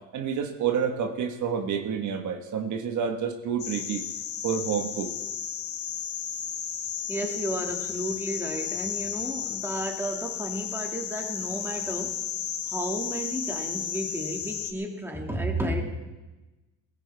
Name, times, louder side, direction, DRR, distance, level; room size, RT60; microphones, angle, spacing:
voice 1, 0.1-4.0 4.4-5.1, right 7 dB, 50° right, 4 dB, 1.6 m, -29 dB
sound 1, 3.6-14.7, left 8 dB, 50° left, 1.5 m, -33 dB
voice 2, 7.1-12.2 12.7-15.8, right 1 dB, 5° right, 1 dB, 2.2 m, -32 dB
18.0 x 16.0 x 3.5 m, 1.1 s
supercardioid pair, 105°, 37 cm